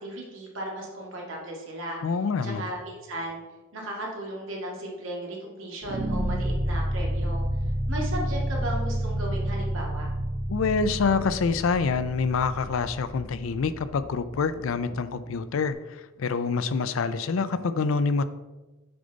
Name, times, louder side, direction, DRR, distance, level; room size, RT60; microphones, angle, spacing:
voice 1, 0.0-2.0 2.4-3.4 3.7-7.4 7.9-10.1, right 1 dB, 65° right, -2 dB, 1.9 m, -35 dB
voice 2, 2.0-2.6 10.5-18.2, left 4 dB, 65° left, 13 dB, 0.4 m, -26 dB
sound 1, 5.8-14.9, right 1 dB, 80° right, 0.9 m, -30 dB
6.8 x 5.1 x 3.9 m, 1.1 s
head